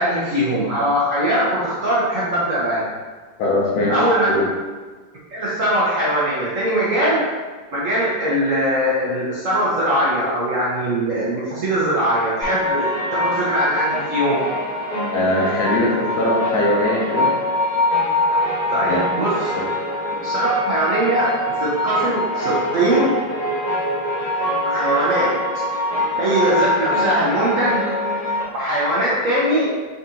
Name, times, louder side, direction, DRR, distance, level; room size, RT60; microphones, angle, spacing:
voice 1, 0.0-2.9 3.9-4.3 5.3-7.3 7.7-14.5 18.3-18.4 18.7-19.6 20.2-23.2 24.7-25.5 26.2-27.8 28.5-29.7, right 1 dB, 70° right, -7 dB, 0.7 m, -21 dB
voice 2, 3.4-4.0 4.3-4.4 15.1-17.3 18.9-19.0 19.5-19.6, left 1 dB, 70° left, -5 dB, 0.9 m, -20 dB
sound 1, 12.4-28.4, left 1 dB, 55° left, 0.4 m, -23 dB
4.0 x 3.6 x 2.7 m, 1.4 s
omnidirectional pair, 2.2 m